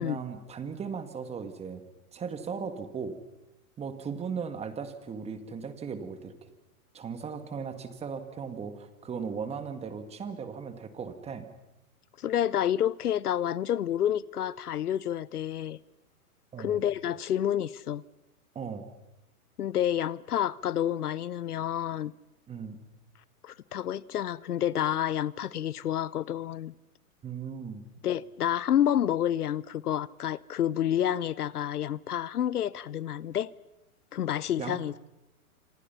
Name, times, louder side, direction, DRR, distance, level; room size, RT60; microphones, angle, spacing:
voice 1, 0.0-1.8 2.1-3.2 3.8-6.5 6.9-11.5 16.5-16.8 18.6-18.9 22.5-22.8 27.2-27.8 34.6-34.8, right 6 dB, 15° right, 1.9 m, -37 dB
voice 2, 12.2-15.8 16.6-18.0 19.6-22.1 23.4-26.7 28.0-33.5 34.1-34.9, left 10 dB, 90° left, 0.9 m, -29 dB
27.0 x 26.0 x 5.7 m
hypercardioid pair, 140°, 45 cm